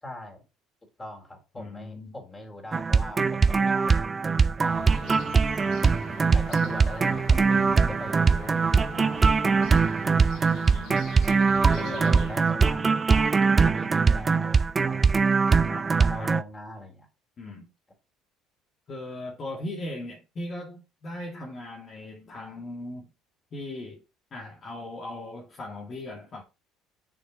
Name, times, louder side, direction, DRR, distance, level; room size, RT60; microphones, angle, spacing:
voice 1, 0.0-0.4 1.0-4.1 4.6-5.4 6.3-9.8 10.3-10.5 11.8-13.4 13.6-15.4 16.0-17.1, left 1 dB, 15° left, 3.9 m, -41 dB
voice 2, 1.5-2.2 7.3-8.0 10.6-11.0 11.6-12.3 12.6-12.9 15.7-16.4 17.4-17.7 18.9-23.1 23.5-24.0 24.3-26.4, left 2 dB, 35° left, 2.0 m, -39 dB
sound 1, 2.7-16.4, right 5 dB, 25° right, 0.4 m, -22 dB
sound 2, 4.6-12.5, left 3 dB, 70° left, 3.4 m, -44 dB
6.9 x 6.1 x 4.2 m
cardioid pair, 115°, 0 cm